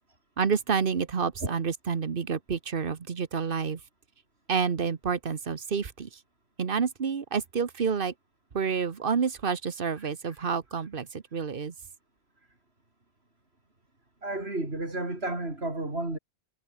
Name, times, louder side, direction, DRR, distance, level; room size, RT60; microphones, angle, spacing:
voice 1, 0.4-3.8 4.5-6.1 6.6-8.1 8.5-11.7, right 6 dB, 55° right, 1.3 m, -29 dB
voice 2, 10.0-10.5 14.2-16.2, right 2 dB, 70° right, 5.3 m, -33 dB
omnidirectional pair, 1.1 m